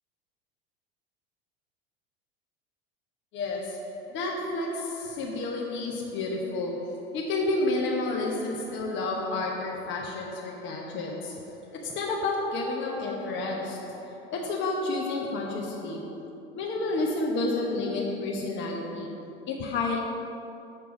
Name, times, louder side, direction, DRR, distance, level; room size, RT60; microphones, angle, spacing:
voice 1, 3.3-20.0, left 2 dB, 35° left, -1 dB, 0.9 m, -31 dB
6.9 x 4.5 x 6.0 m, 2.6 s
hypercardioid pair, 80°, 31 cm